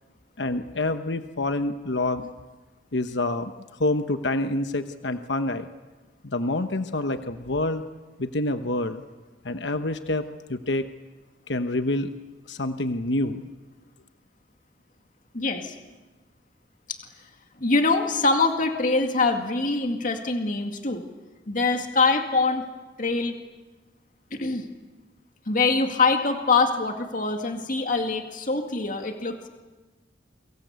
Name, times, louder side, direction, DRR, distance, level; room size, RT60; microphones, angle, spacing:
voice 1, 0.4-2.3 2.9-3.5 3.8-5.7 6.2-7.8 8.2-9.0 9.4-10.9 11.5-12.1 12.5-13.4, left 2 dB, 65° left, 8 dB, 1.1 m, -27 dB
voice 2, 15.3-15.7 16.9-17.0 17.6-21.0 21.5-22.7 23.0-23.4 24.3-24.7 25.5-29.5, left 3 dB, 45° left, 5 dB, 2.2 m, -24 dB
29.0 x 24.5 x 8.2 m, 1.2 s
head